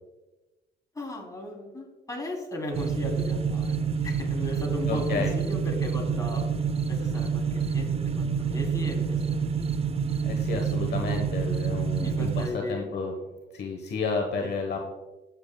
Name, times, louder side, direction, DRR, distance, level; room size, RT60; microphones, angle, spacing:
voice 1, 0.9-6.4 6.9-9.9 10.9-11.0 12.0-13.0 14.4-14.8, left 1 dB, 15° left, -1 dB, 3.0 m, -36 dB
sound 1, 2.7-12.5, right 6 dB, 30° right, 0.5 m, -28 dB
voice 2, 4.8-5.3 10.2-13.1 13.5-14.8, left 4 dB, 55° left, 2 dB, 1.1 m, -31 dB
14.5 x 7.0 x 2.2 m, 1.1 s
cardioid pair, 90°, 20 cm